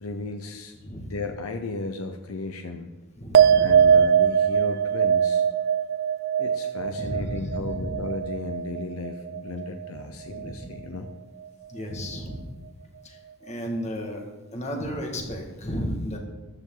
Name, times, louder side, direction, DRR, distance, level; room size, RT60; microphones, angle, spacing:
voice 1, 0.0-0.8 1.1-2.9 3.6-5.4 6.4-11.1, left 3 dB, 75° left, 6 dB, 0.8 m, -35 dB
voice 2, 3.2-4.0 6.8-8.0 10.3-10.6 11.7-12.5 13.0-14.2 14.5-16.2, equal, 30° left, 1 dB, 2.0 m, -33 dB
sound 1, 3.3-10.0 10.3-11.0, right 8 dB, 45° right, 0.3 m, -22 dB
14.0 x 10.0 x 3.9 m, 1.2 s
head